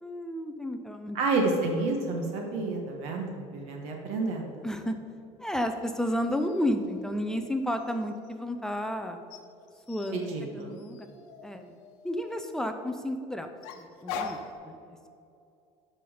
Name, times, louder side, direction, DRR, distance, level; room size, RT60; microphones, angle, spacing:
voice 1, 0.0-1.2 4.6-5.0 5.4-9.2 9.9-10.3 10.5-11.1 11.4-11.8 12.0-13.5 13.7-15.1, left 1 dB, 5° left, 6 dB, 0.4 m, -32 dB
voice 2, 1.1-4.7 10.1-10.7, right 3 dB, 60° right, 2 dB, 1.2 m, -30 dB
sound 1, 6.3-8.3 9.3-12.5 13.6-14.5, left 5 dB, 75° left, 0.9 m, -43 dB
12.5 x 5.5 x 4.9 m, 2.6 s
cardioid pair, 170°, 13 cm